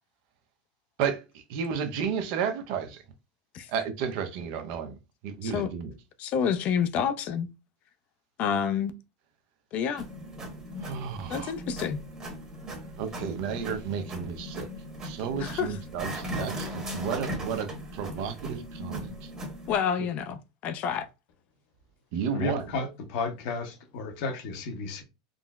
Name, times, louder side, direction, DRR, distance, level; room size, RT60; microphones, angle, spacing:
voice 1, 1.0-3.0 3.7-5.0 5.2-5.9 10.8-11.5 13.0-14.7 15.0-19.3 22.1-22.6, right 7 dB, 60° right, 0.6 m, -32 dB
voice 2, 6.2-7.5 8.4-8.9 9.7-10.0 11.3-12.0 15.4-15.8 19.7-21.1, left 7 dB, 50° left, 0.4 m, -28 dB
sound 1, 10.0-19.8, equal, 20° right, 1.1 m, -38 dB
voice 3, 22.3-25.0, left 3 dB, 65° left, 0.8 m, -33 dB
3.7 x 2.0 x 2.3 m
supercardioid pair, 110°, 3 cm